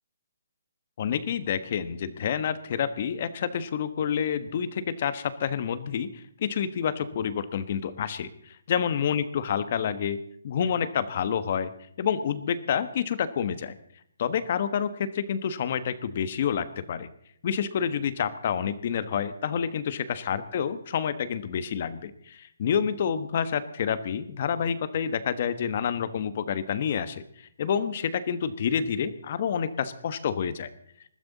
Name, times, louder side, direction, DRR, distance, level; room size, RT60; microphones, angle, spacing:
voice 1, 1.0-10.2 10.4-11.7 12.0-13.7 14.2-17.1 17.4-27.2 27.6-30.7, left 8 dB, 45° left, 13 dB, 1.2 m, -28 dB
21.0 x 14.0 x 4.1 m, 0.68 s
hypercardioid pair, 160°, 0 cm